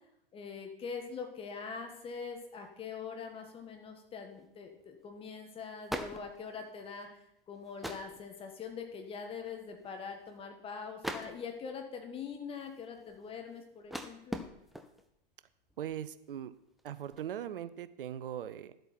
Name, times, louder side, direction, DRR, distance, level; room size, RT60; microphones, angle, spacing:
voice 1, 0.3-7.1 7.5-14.4, left 5 dB, 20° left, 4 dB, 1.7 m, -43 dB
sound 1, 1.4-1.5 1.7-2.2 2.6-2.7 4.1-4.5 4.8-4.9 5.1-5.4 5.7-7.1 7.6-8.3 8.7-9.0 9.4-9.5 9.6-10.4 11.0-11.8 12.3-15.2 15.7-16.1 16.3-17.4, equal, ahead, 0.3 m, -44 dB
voice 2, 15.8-16.5 16.8-18.7, right 10 dB, 65° right, 15 dB, 0.8 m, -40 dB
12.0 x 7.9 x 4.5 m, 0.78 s
hypercardioid pair, 120°, 29 cm